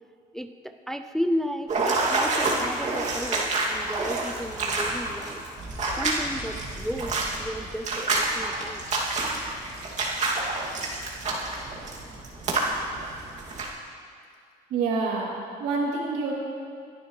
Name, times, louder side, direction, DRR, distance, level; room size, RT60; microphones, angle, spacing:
voice 1, 0.3-5.4 6.0-8.8, equal, ahead, 8 dB, 0.5 m, -33 dB
sound 1, 1.7-13.7, right 2 dB, 45° right, 2.5 m, -28 dB
voice 2, 14.7-15.3 15.6-16.3, right 4 dB, 80° right, -3 dB, 3.1 m, -26 dB
21.5 x 11.5 x 3.2 m, 2.3 s
cardioid pair, 110°, 17 cm